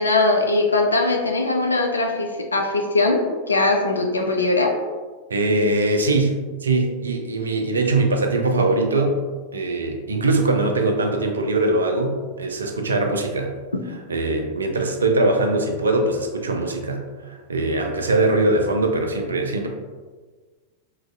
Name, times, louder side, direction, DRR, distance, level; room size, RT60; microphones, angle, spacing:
voice 1, 0.0-3.2 3.5-4.7 13.7-13.8, left 2 dB, 75° left, 2 dB, 0.4 m, -20 dB
voice 2, 5.3-9.2 9.5-13.5 14.1-19.7, right 2 dB, 70° right, 3 dB, 0.4 m, -21 dB
3.1 x 2.4 x 2.5 m, 1.4 s
figure-of-eight pair, 90°, 0 cm